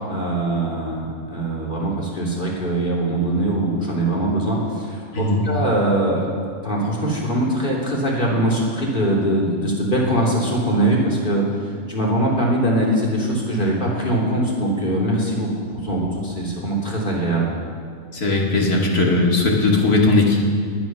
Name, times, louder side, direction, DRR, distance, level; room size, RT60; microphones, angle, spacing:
voice 1, 0.0-6.3 6.6-17.5, right 1 dB, 35° left, -4 dB, 3.3 m, -22 dB
voice 2, 5.1-5.5 18.1-20.4, left 2 dB, 80° left, -2 dB, 2.9 m, -18 dB
20.0 x 10.5 x 6.1 m, 2.1 s
omnidirectional pair, 1.6 m